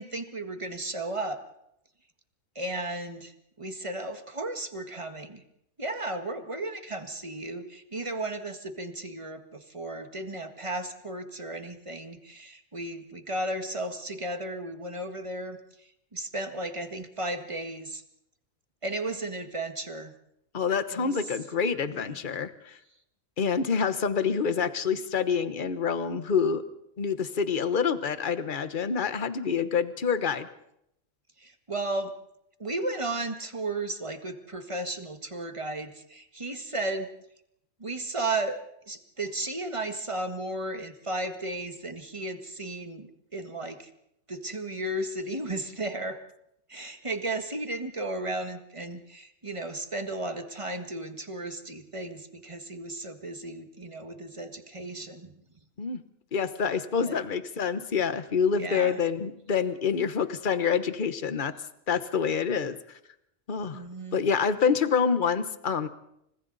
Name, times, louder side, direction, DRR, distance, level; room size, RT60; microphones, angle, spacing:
voice 1, 0.0-1.4 2.6-5.4 5.8-18.0 18.8-20.1 20.9-21.2 21.9-22.2 31.4-32.1 32.6-37.1 37.8-38.6 38.9-43.9 44.3-46.2 46.7-55.4 57.0-57.2 58.5-59.0 63.7-64.2, right 2 dB, 20° right, 6 dB, 1.7 m, -34 dB
voice 2, 20.5-22.8 23.4-26.6 27.0-30.5 55.8-56.0 56.3-61.5 61.9-62.8 63.5-63.8 64.1-65.9, left 6 dB, 40° left, 11 dB, 1.3 m, -27 dB
29.5 x 26.0 x 4.1 m, 0.79 s
omnidirectional pair, 1.4 m